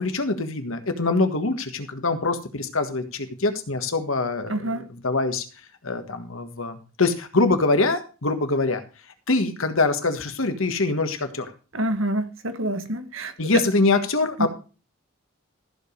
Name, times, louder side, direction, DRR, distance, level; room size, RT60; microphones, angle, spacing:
voice 1, 0.0-5.4 5.8-8.8 9.3-11.5 13.4-14.5, left 3 dB, 75° left, 8 dB, 1.6 m, -24 dB
voice 2, 4.5-4.8 11.7-13.3 14.4-14.5, right 1 dB, 70° right, 8 dB, 1.5 m, -27 dB
14.5 x 5.1 x 6.7 m, 0.35 s
head